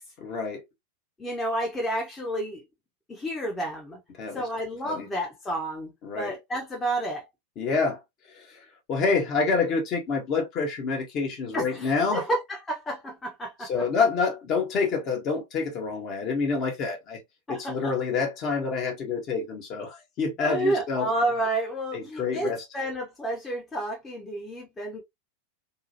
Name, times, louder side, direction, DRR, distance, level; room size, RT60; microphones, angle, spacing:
voice 1, 0.2-0.6 4.2-4.5 4.8-5.1 6.0-6.3 7.6-8.0 8.3-12.2 13.6-17.2 17.5-21.1 21.9-22.6, left 4 dB, 35° left, 1.0 m, -27 dB
voice 2, 1.2-2.6 3.1-4.0 4.3-5.9 6.2-7.3 11.5-13.7 17.5-17.9 20.4-25.0, right 1 dB, 15° left, 0.9 m, -30 dB
2.8 x 2.4 x 2.6 m
figure-of-eight pair, 90°, 0 cm